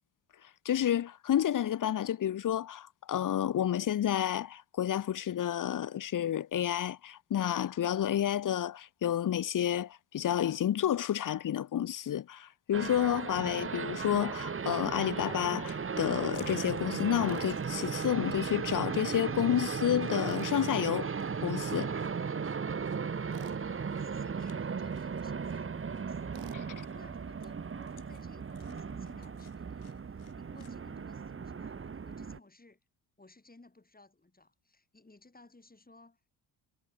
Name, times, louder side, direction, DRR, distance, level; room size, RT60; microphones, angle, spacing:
voice 1, 0.6-21.1 21.4-21.9 26.5-26.6, left 10 dB, 40° left, 0.7 m, -30 dB
sound 1, 12.7-32.4, right 6 dB, 25° right, 1.0 m, -36 dB
sound 2, 15.2-30.8, left 20 dB, 85° left, 2.5 m, -64 dB
Tools, 17.3-17.5 20.2-20.6 23.3-23.6 26.3-26.6, right 13 dB, 60° right, 1.1 m, -49 dB
voice 2, 23.3-26.5 26.9-32.8 33.2-36.3, left 2 dB, 20° left, 4.7 m, -59 dB
supercardioid pair, 55°, 49 cm